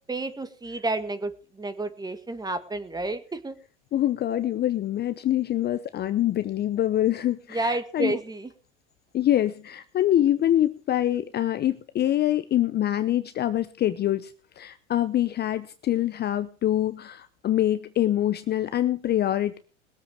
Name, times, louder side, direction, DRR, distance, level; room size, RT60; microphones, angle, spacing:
voice 1, 0.1-3.6 7.5-8.5, right 2 dB, 10° right, 10 dB, 1.7 m, -30 dB
voice 2, 3.9-8.2 9.1-19.6, left 12 dB, 30° left, 12 dB, 0.8 m, -25 dB
21.0 x 8.0 x 5.0 m, 0.38 s
hypercardioid pair, 100°, 35 cm